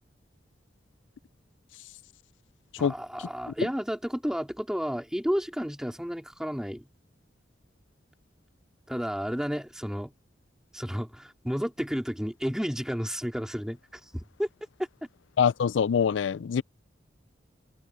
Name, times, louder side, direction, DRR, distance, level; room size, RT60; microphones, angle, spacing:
voice 1, 2.8-6.9 8.9-10.1 10.7-13.8 14.1-14.5, equal, 5° right, 2.9 m, -31 dB
voice 2, 15.4-16.6, left 7 dB, 85° left, 0.4 m, -24 dB
open air
head